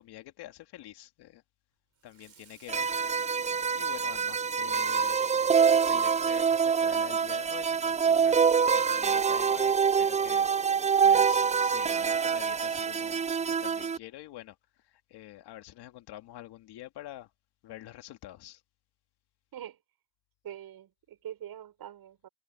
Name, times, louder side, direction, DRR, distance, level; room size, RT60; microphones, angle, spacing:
voice 1, 0.0-1.4 2.0-2.9 3.7-5.2 5.7-10.5 11.0-14.6 14.8-17.3 17.6-18.6, left 14 dB, 85° left, 2.2 m, -46 dB
Water tap faucet / Sink (filling or washing), 2.0-8.6 9.0-9.3 9.6-9.7 10.1-10.2 11.3-11.4 11.9-12.1, right 7 dB, 45° right, 5.0 m, -59 dB
sound 1, 2.7-14.0, right 6 dB, 20° right, 0.4 m, -25 dB
voice 2, 20.4-22.3, right 11 dB, 65° right, 6.9 m, -44 dB
cardioid pair, 95°, 39 cm